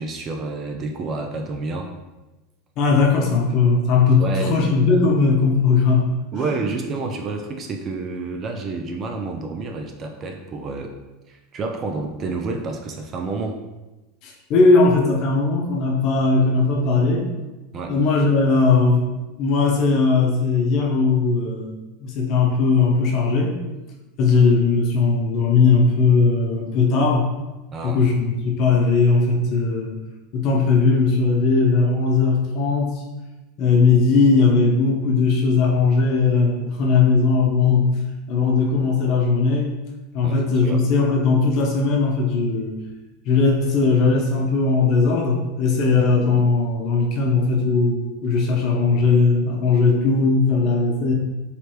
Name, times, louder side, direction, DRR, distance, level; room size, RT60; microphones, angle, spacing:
voice 1, 0.0-1.9 4.2-4.7 6.3-10.9 11.3-13.6 17.7-17.9 27.7-28.0 40.2-40.8, right 3 dB, 25° right, 4 dB, 0.4 m, -29 dB
voice 2, 2.8-6.5 14.2-17.3 17.9-19.1 19.4-21.7 22.0-23.6 24.2-27.3 27.8-30.0 30.3-33.0 33.6-37.9 38.3-39.7 40.1-42.8 43.2-51.1, left 4 dB, 40° left, 0 dB, 0.8 m, -18 dB
4.8 x 3.3 x 3.0 m, 1.1 s
supercardioid pair, 155°, 0 cm